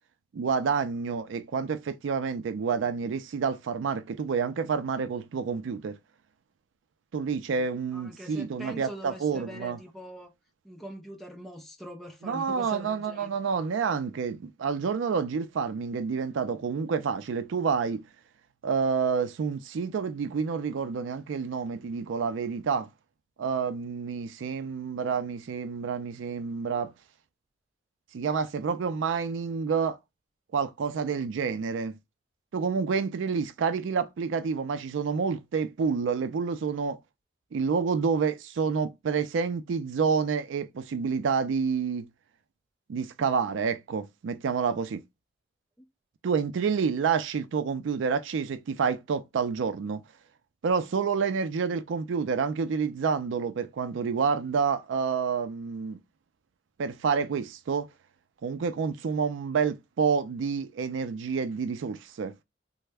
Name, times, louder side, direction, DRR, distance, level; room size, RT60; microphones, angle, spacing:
voice 1, 0.3-6.0 7.1-9.8 12.2-18.0 18.6-22.9 23.4-26.9 28.1-30.0 30.5-32.0 32.5-37.0 37.5-42.1 42.9-45.0 46.2-50.0 50.6-56.0 56.8-57.9 58.4-62.3, right 5 dB, 85° right, 0.4 m, -28 dB
voice 2, 7.9-10.3 10.6-13.3, equal, ahead, 0.5 m, -43 dB
3.2 x 2.0 x 3.3 m
head